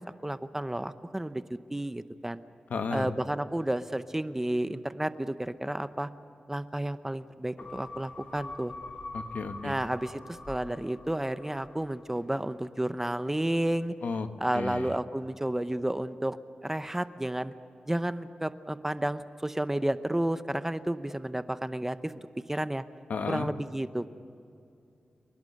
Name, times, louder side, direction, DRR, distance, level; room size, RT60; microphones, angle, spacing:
voice 1, 0.0-2.4 2.9-6.1 6.5-8.7 9.6-13.9 14.4-17.5 17.9-22.8 23.3-24.1, right 1 dB, 15° right, 12 dB, 0.8 m, -31 dB
voice 2, 2.7-3.1 9.1-9.7 14.0-14.3 14.5-14.9 23.1-23.5, left 4 dB, 75° left, 7 dB, 1.4 m, -33 dB
sound 1, 7.6-12.3 12.6-12.7, left 3 dB, 55° left, 3.0 m, -44 dB
28.5 x 12.0 x 9.6 m, 2.6 s
cardioid pair, 70°, 3 cm